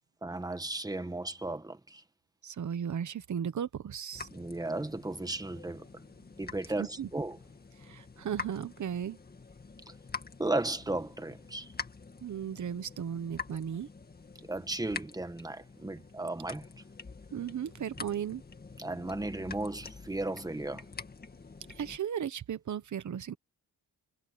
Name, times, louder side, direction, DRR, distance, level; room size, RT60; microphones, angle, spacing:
voice 1, 0.2-2.0 4.3-5.9 6.4-7.4 10.4-11.7 14.5-16.7 18.8-20.8, right 2 dB, 10° right, 1.3 m, -35 dB
voice 2, 2.4-4.3 6.8-7.1 7.8-9.2 12.2-13.9 17.3-18.4 21.7-23.3, right 8 dB, 55° right, 1.1 m, -36 dB
sound 1, 4.1-22.0, left 4 dB, 25° left, 1.9 m, -46 dB
wide cardioid pair, 155°, 36 cm